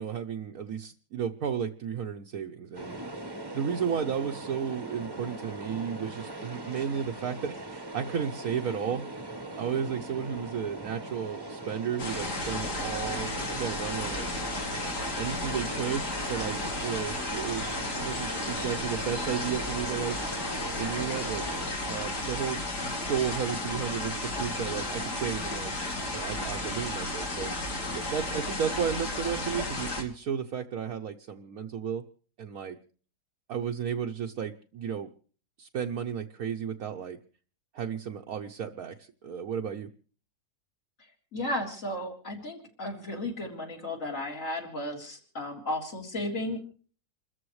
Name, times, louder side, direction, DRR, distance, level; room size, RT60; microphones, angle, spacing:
voice 1, 0.0-3.0 3.5-9.0 9.6-14.3 14.7-17.6 18.0-20.2 20.8-21.4 21.8-25.7 26.1-27.5 27.9-32.0 32.4-32.8 33.5-35.1 35.6-37.2 37.7-39.9, right 7 dB, 65° right, 2 dB, 1.3 m, -33 dB
sound 1, 2.7-21.7, right 2 dB, 15° right, 1.2 m, -40 dB
sound 2, 12.0-30.0, left 2 dB, 75° left, 3.4 m, -33 dB
voice 2, 41.3-46.7, left 1 dB, 50° left, 1 dB, 4.1 m, -34 dB
29.0 x 14.0 x 3.2 m, 0.42 s
omnidirectional pair, 1.8 m